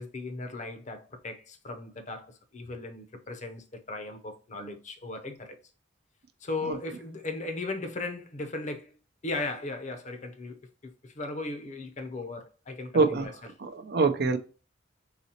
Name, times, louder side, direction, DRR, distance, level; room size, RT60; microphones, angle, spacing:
voice 1, 0.0-5.6 6.4-8.9 9.2-13.3, left 2 dB, 40° left, 0.7 m, -37 dB
voice 2, 12.9-13.3 13.6-14.4, right 4 dB, 55° right, 0.5 m, -25 dB
4.1 x 4.0 x 2.8 m
head